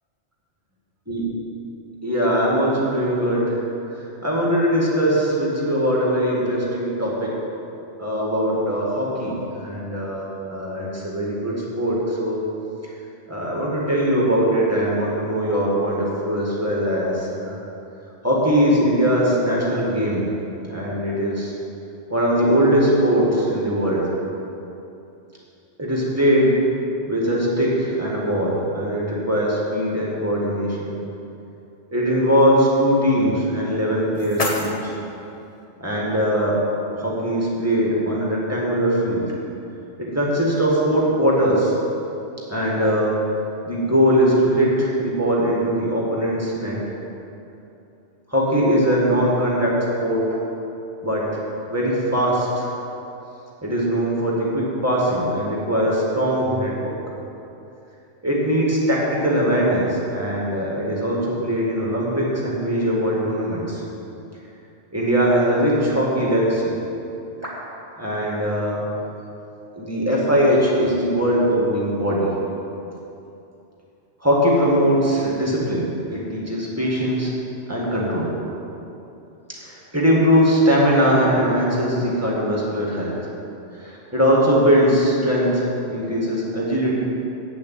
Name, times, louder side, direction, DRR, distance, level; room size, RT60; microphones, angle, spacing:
voice 1, 2.0-3.6 3.9-7.3 8.0-12.4 13.3-17.6 18.2-20.2 20.7-21.5 22.1-24.1 25.8-26.6 27.1-30.9 31.9-34.9 35.8-36.6 36.9-39.3 40.0-41.7 42.5-43.1 43.6-46.8 48.3-50.3 51.0-51.4 51.7-52.7 53.6-56.9 58.2-63.8 64.9-66.7 67.4-67.5 68.0-68.8 69.8-72.3 74.2-77.3 77.7-78.3 79.5-83.1 83.8-86.9, equal, 15° right, -5 dB, 2.2 m, -21 dB
sound 1, 33.6-35.6, left 2 dB, 35° left, 1.0 m, -30 dB
8.6 x 6.9 x 8.4 m, 2.8 s
omnidirectional pair, 1.2 m